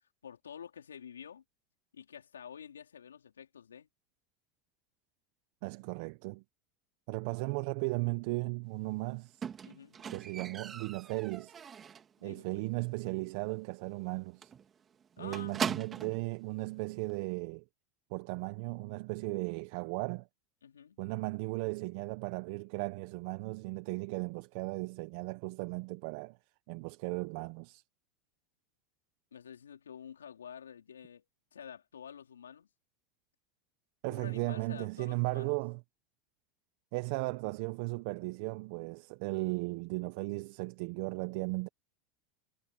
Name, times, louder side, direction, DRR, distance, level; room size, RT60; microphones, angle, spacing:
voice 1, 0.2-1.4 1.9-3.9 9.6-10.0 12.2-12.6 15.2-15.6 20.6-21.0 29.3-31.2 31.5-32.7 34.1-35.6, left 8 dB, 90° left, 4.3 m, -49 dB
voice 2, 5.6-6.4 7.1-9.5 10.1-11.5 12.2-14.5 15.2-17.6 18.1-20.3 21.0-26.4 26.7-27.8 34.0-35.8 36.9-41.7, right 25 dB, 65° right, 1.3 m, -36 dB
Squeak, 9.4-12.2 12.5-12.9 13.2-13.3 13.7-13.8 14.0-14.2 14.4-16.3 17.1-17.2, right 7 dB, 30° right, 3.1 m, -40 dB
hypercardioid pair, 90°, 0 cm